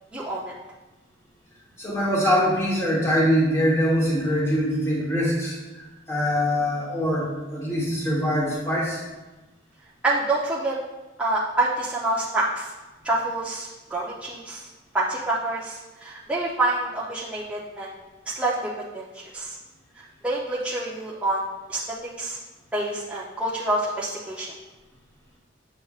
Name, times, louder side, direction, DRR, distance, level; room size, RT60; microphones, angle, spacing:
voice 1, 0.1-0.5 10.0-10.8 11.2-12.7 13.0-14.7 14.9-17.9 18.3-19.6 20.0-21.4 21.7-22.4 22.7-24.5, right 2 dB, 5° right, -7 dB, 0.6 m, -27 dB
voice 2, 1.8-9.0, equal, 15° left, -4 dB, 1.2 m, -23 dB
6.7 x 6.5 x 2.4 m, 1.1 s
head